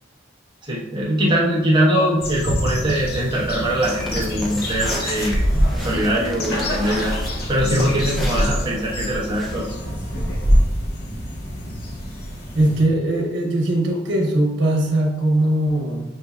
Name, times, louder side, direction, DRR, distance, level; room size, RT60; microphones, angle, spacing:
voice 1, 0.6-5.5 5.8-7.1 7.5-9.7, right 1 dB, 25° right, -4 dB, 1.0 m, -22 dB
sound 1, 2.2-12.8, left 1 dB, 55° left, 1.0 m, -30 dB
sound 2, 3.8-9.7, equal, ahead, 0.6 m, -33 dB
sound 3, 5.1-10.6, equal, 75° left, 1.3 m, -23 dB
voice 2, 12.5-16.0, right 1 dB, 85° right, 0 dB, 1.0 m, -20 dB
6.6 x 2.6 x 2.3 m, 1.0 s
head